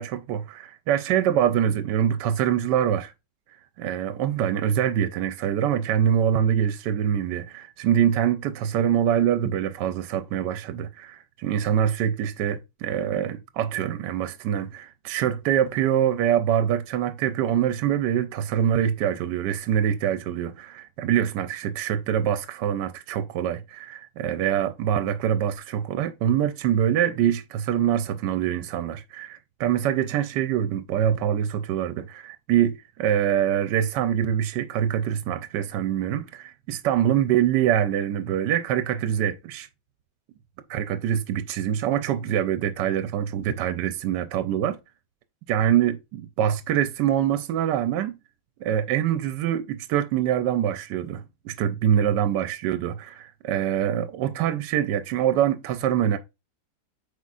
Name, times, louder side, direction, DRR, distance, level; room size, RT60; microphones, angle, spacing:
voice 1, 0.0-3.1 3.8-39.7 40.7-44.8 45.5-48.2 48.6-56.2, right 10 dB, 75° right, 1.2 m, -24 dB
8.1 x 4.9 x 2.4 m
omnidirectional pair, 1.9 m